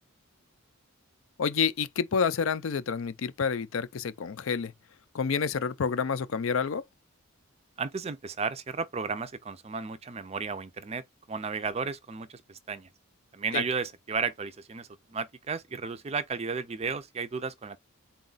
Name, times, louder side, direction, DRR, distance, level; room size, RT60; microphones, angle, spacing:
voice 1, 1.4-4.7 5.1-6.8 13.5-13.6, left 6 dB, 70° left, 0.4 m, -28 dB
voice 2, 7.8-12.9 13.3-17.8, right 5 dB, 30° right, 0.4 m, -34 dB
4.0 x 2.3 x 3.9 m
head